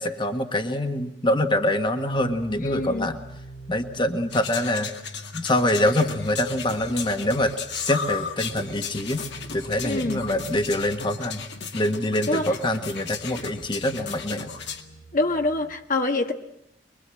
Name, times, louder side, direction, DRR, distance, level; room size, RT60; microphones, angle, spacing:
voice 1, 0.0-3.2 3.7-4.9 5.3-9.2 9.5-11.4 11.7-14.5, left 1 dB, 25° left, 6 dB, 1.6 m, -25 dB
sound 1, 2.0-15.7, right 1 dB, 90° left, 5.3 m, -45 dB
voice 2, 2.6-3.1 9.8-10.2 12.3-12.5 15.1-16.3, left 2 dB, 50° left, 4 dB, 1.6 m, -25 dB
sound 2, 4.3-14.8, left 6 dB, 70° left, 2.3 m, -35 dB
25.0 x 22.5 x 7.8 m, 0.84 s
head